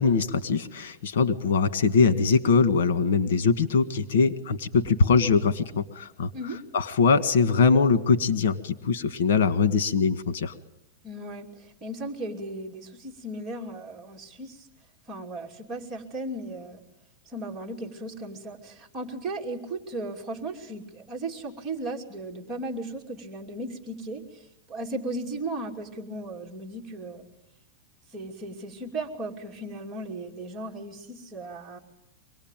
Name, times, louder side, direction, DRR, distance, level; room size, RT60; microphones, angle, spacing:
voice 1, 0.0-6.3 6.7-10.5, left 5 dB, 80° left, 12 dB, 1.8 m, -22 dB
voice 2, 11.0-14.7 15.1-16.8 17.3-27.3 28.1-31.8, right 2 dB, 15° right, 0 dB, 2.8 m, -36 dB
25.0 x 19.5 x 9.1 m, 0.84 s
supercardioid pair, 170°, 0 cm